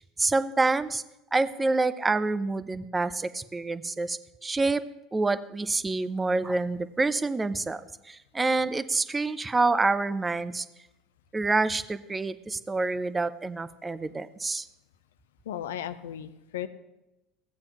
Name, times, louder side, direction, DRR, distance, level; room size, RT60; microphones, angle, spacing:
voice 1, 0.2-1.0 1.3-4.8 5.1-7.8 8.1-10.7 11.3-14.7, right 3 dB, 15° right, 14 dB, 0.5 m, -27 dB
voice 2, 15.5-16.7, left 10 dB, 70° left, 13 dB, 0.5 m, -35 dB
14.5 x 8.7 x 2.9 m, 0.93 s
figure-of-eight pair, 70°, 0 cm